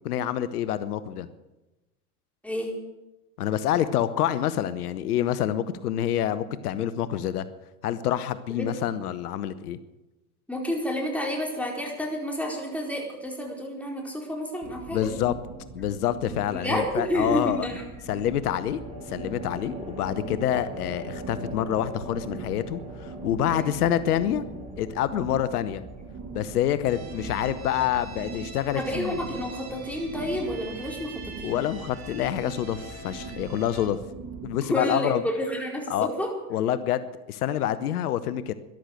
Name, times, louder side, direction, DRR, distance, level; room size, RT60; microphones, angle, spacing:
voice 1, 0.0-1.3 3.4-7.5 7.8-9.8 14.9-15.3 15.7-17.7 18.1-18.8 19.1-24.5 24.8-25.8 26.3-29.1 31.4-34.0 34.4-35.2 35.9-36.1 36.5-38.5, left 11 dB, 85° left, 14 dB, 0.9 m, -27 dB
voice 2, 2.4-2.7 8.5-8.7 10.5-15.0 16.5-17.8 23.4-23.8 28.7-31.6 34.7-36.3, equal, 5° left, 0 dB, 4.4 m, -30 dB
sound 1, 14.6-34.6, right 4 dB, 35° right, 2.3 m, -42 dB
sound 2, 14.9-15.5 18.1-29.4, right 1 dB, 15° right, 7.0 m, -43 dB
sound 3, 26.8-33.9, right 4 dB, 55° right, 3.4 m, -43 dB
13.5 x 12.0 x 7.8 m, 1.0 s
hypercardioid pair, 85°, 44 cm